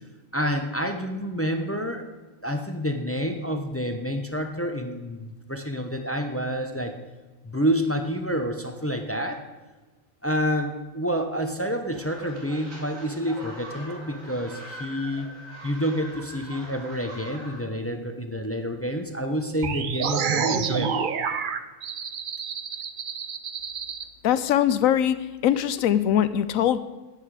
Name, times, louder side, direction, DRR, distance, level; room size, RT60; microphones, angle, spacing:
voice 1, 0.3-2.0 2.4-6.9 7.4-9.4 10.2-15.3 15.6-21.1, equal, 15° left, 5 dB, 0.7 m, -28 dB
sound 1, 11.9-17.6, equal, 90° right, 2.9 m, -42 dB
sound 2, 19.6-24.0, right 6 dB, 50° right, 0.7 m, -28 dB
voice 2, 24.2-25.2 25.4-26.8, left 10 dB, 85° left, 13 dB, 1.0 m, -21 dB
13.0 x 9.5 x 4.9 m, 1.2 s
omnidirectional pair, 1.4 m